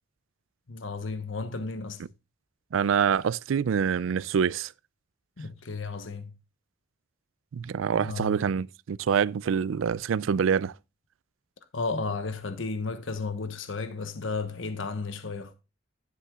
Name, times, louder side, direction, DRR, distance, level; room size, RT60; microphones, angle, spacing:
voice 1, 0.7-2.0 5.4-6.3 7.9-8.4 11.7-15.5, left 4 dB, 75° left, 1.1 m, -33 dB
voice 2, 2.7-4.7 7.5-10.7, right 7 dB, 85° right, 0.4 m, -26 dB
11.5 x 9.7 x 2.4 m
head